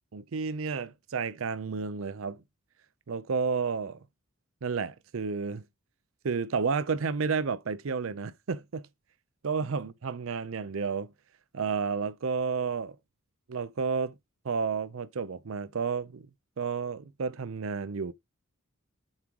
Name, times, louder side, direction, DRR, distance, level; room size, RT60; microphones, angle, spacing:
voice 1, 0.1-2.4 3.1-4.0 4.6-5.6 6.2-8.9 9.4-11.1 11.5-13.0 13.5-14.1 14.4-16.3 16.6-18.1, right 5 dB, 70° right, 0.5 m, -31 dB
7.3 x 3.6 x 4.6 m
head